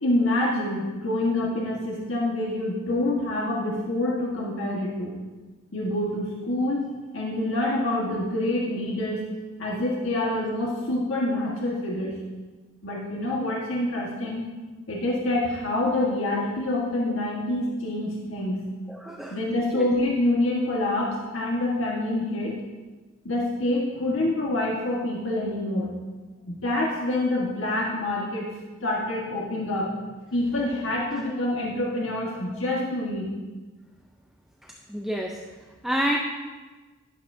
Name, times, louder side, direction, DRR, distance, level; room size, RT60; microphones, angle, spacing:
voice 1, 0.0-5.1 5.7-6.8 7.1-9.2 9.6-12.2 12.8-14.4 14.9-18.6 19.3-22.5 23.2-25.9 26.5-28.5 28.8-29.9 30.3-33.3, left 1 dB, 75° left, -4 dB, 1.6 m, -26 dB
voice 2, 18.9-19.4 19.7-19.9 34.6-35.4 35.8-36.2, equal, ahead, -1 dB, 0.6 m, -29 dB
11.5 x 11.0 x 2.7 m, 1.3 s
head